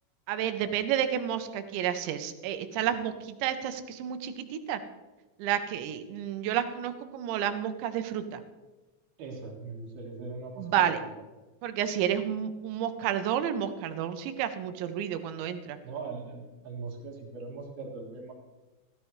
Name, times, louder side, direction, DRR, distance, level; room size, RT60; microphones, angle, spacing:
voice 1, 0.3-4.8 5.4-8.4 10.6-11.0 11.6-15.8, right 10 dB, 85° right, 9 dB, 3.2 m, -30 dB
voice 2, 9.2-10.9 15.8-18.3, right 4 dB, 65° right, -1 dB, 3.5 m, -40 dB
16.5 x 13.5 x 3.2 m, 1.2 s
omnidirectional pair, 5.1 m